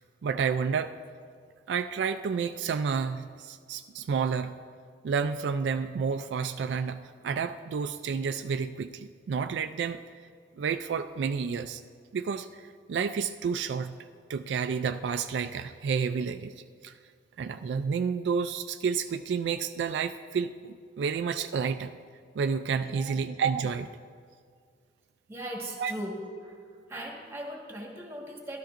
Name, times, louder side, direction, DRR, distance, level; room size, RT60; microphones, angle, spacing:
voice 1, 0.2-0.9 1.7-4.6 5.0-10.0 10.6-11.8 12.1-14.0 14.3-16.5 16.8-16.9 17.4-21.9 22.4-23.9 25.8-25.9, right 6 dB, 75° right, 8 dB, 0.3 m, -30 dB
voice 2, 22.8-23.2 25.3-26.6 26.9-28.6, right 1 dB, 15° right, -1 dB, 1.5 m, -39 dB
13.0 x 12.5 x 2.5 m, 2.1 s
head